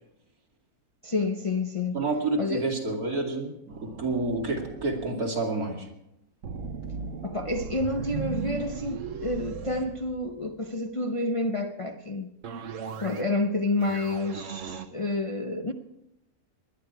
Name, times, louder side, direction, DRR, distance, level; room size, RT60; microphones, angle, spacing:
voice 1, 1.0-2.0 2.4-2.7 7.2-12.3 13.0-15.7, left 2 dB, 35° left, 0.5 m, -29 dB
voice 2, 1.9-5.9, right 2 dB, 85° right, 3.0 m, -29 dB
sound 1, 3.7-5.1 6.4-10.7 12.4-13.4 13.7-14.9, right 6 dB, 60° right, 1.3 m, -37 dB
20.0 x 11.5 x 4.7 m
omnidirectional pair, 1.5 m